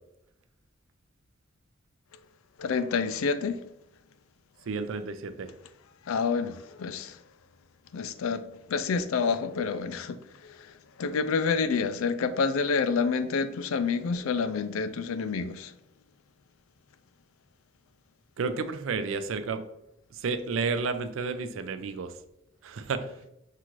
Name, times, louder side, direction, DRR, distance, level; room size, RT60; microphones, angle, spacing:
voice 1, 2.6-3.6 6.1-7.2 7.9-10.7 11.0-15.7, left 5 dB, 85° left, 0.4 m, -28 dB
voice 2, 4.7-5.5 18.4-19.6 20.1-22.1 22.6-23.1, right 4 dB, 75° right, 0.4 m, -31 dB
5.6 x 2.5 x 3.0 m
head